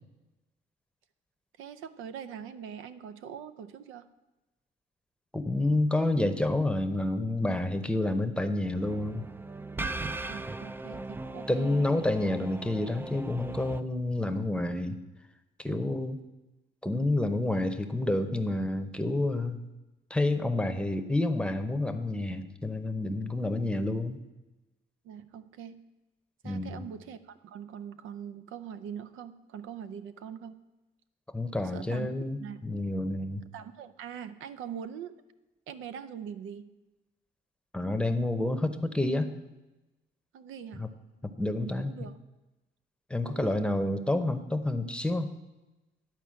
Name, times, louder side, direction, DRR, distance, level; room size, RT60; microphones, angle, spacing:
voice 1, 1.6-4.1 10.3-11.9 25.0-25.8 26.4-30.6 31.7-32.1 32.3-32.6 33.5-35.2 35.7-36.7 40.3-40.9 41.6-42.2 43.3-43.6, right 8 dB, 85° right, 12 dB, 0.6 m, -42 dB
voice 2, 5.3-9.2 11.5-15.0 15.6-16.2 16.8-19.6 20.1-24.2 26.4-26.8 31.3-33.4 37.7-39.3 40.7-40.9 41.2-42.1 43.1-45.3, left 2 dB, 5° left, 9 dB, 0.8 m, -29 dB
sound 1, 8.8-13.8, right 2 dB, 10° right, 0.3 m, -38 dB
11.0 x 4.5 x 7.5 m, 1.0 s
cardioid pair, 90°, 20 cm